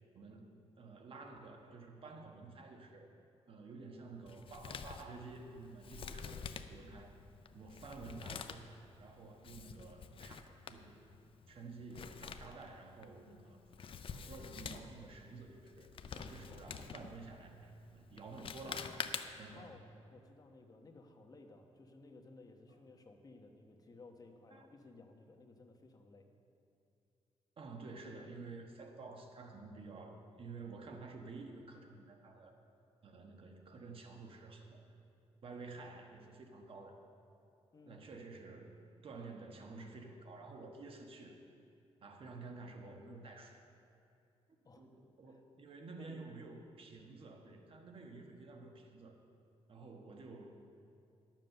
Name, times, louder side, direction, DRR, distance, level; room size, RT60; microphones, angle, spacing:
voice 1, 0.1-3.1 3.5-7.1 7.5-11.1 11.5-13.6 14.1-19.1 19.4-19.7 24.5-24.7 27.6-32.6 33.0-34.8 35.4-37.0 37.8-38.8 39.0-41.3 42.0-43.6 44.5-49.2 49.7-50.6, right 3 dB, 55° right, 3 dB, 1.3 m, -51 dB
Male speech man speaking, 4.3-19.6, left 6 dB, 50° left, 0.5 m, -48 dB
voice 2, 19.5-26.3 37.7-38.1 44.6-44.9 45.3-45.4 46.0-46.2, left 3 dB, 35° left, 4 dB, 1.1 m, -58 dB
11.0 x 7.5 x 6.7 m, 2.5 s
cardioid pair, 120°, 11 cm